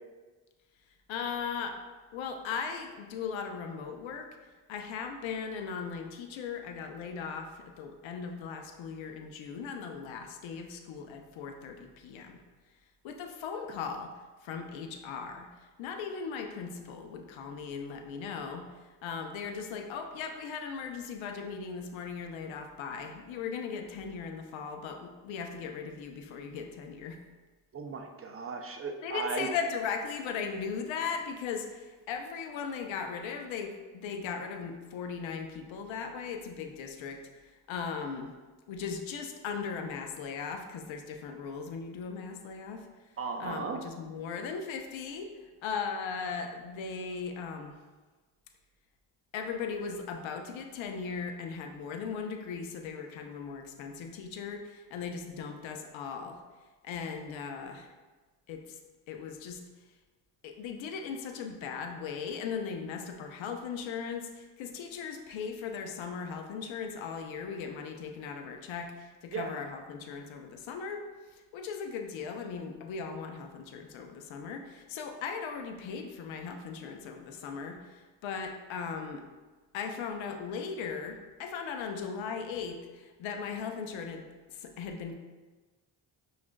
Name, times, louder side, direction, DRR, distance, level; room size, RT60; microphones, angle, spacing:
voice 1, 1.1-1.8 2.1-4.3 4.7-12.4 13.0-14.1 14.4-18.7 19.0-27.2 29.0-38.3 38.7-42.9 43.4-47.7 49.3-56.4 56.8-57.9 58.5-58.8 59.1-59.6 60.4-79.2 79.7-85.2, left 6 dB, 80° left, 5 dB, 0.6 m, -38 dB
voice 2, 27.7-29.5 43.2-43.8 69.3-69.5, right 5 dB, 35° right, 4 dB, 0.4 m, -36 dB
5.9 x 2.4 x 2.2 m, 1.3 s
cardioid pair, 65°, 46 cm